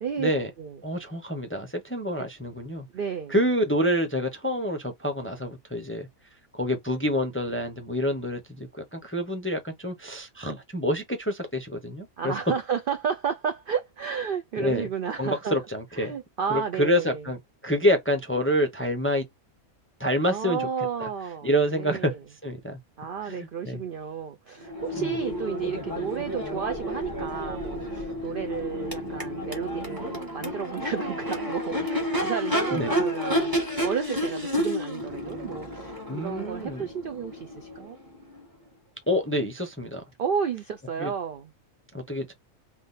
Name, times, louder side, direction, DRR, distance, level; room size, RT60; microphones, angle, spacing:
voice 1, 0.2-0.5 0.8-2.9 3.3-6.1 6.5-12.4 14.6-14.9 15.2-16.1 16.5-17.4 17.6-19.3 20.0-20.7 21.0-21.1 21.4-22.2 22.4-22.8 23.2-23.8 25.0-25.1 32.7-32.9 36.1-36.8 39.1-40.0 41.0-41.1 41.9-42.3, equal, 15° left, 0.5 m, -27 dB
voice 2, 2.9-3.3 12.2-15.6 15.9-17.2 20.2-22.2 23.0-38.0 40.2-41.5, right 7 dB, 60° right, 0.5 m, -32 dB
Crowd / Race car auto racing / Accelerating revving vroom, 24.6-38.4, equal, 15° right, 1.4 m, -31 dB
3.6 x 2.6 x 3.9 m
omnidirectional pair, 1.5 m